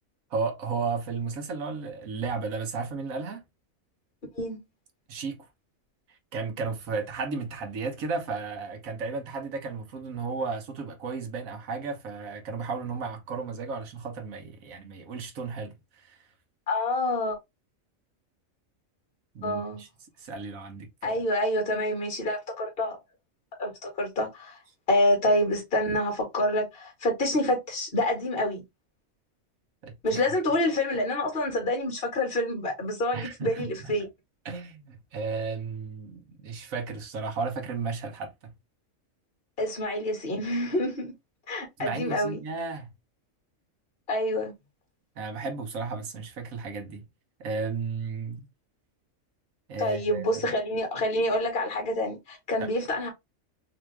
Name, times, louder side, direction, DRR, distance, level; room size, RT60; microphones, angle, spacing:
voice 1, 0.3-3.4 5.1-5.5 6.1-16.3 19.3-19.9 20.2-21.2 29.8-30.4 33.1-34.1 34.4-38.5 41.8-42.9 45.2-47.1 47.4-48.5 49.7-50.5 52.6-52.7, right 4 dB, 80° right, 1.4 m, -34 dB
voice 2, 16.7-17.4 19.4-19.8 21.0-23.0 23.6-24.6 24.9-28.6 30.0-34.1 39.6-41.1 41.5-42.4 44.1-44.5 49.8-53.1, left 1 dB, 45° left, 1.9 m, -27 dB
3.9 x 2.9 x 3.3 m
omnidirectional pair, 1.4 m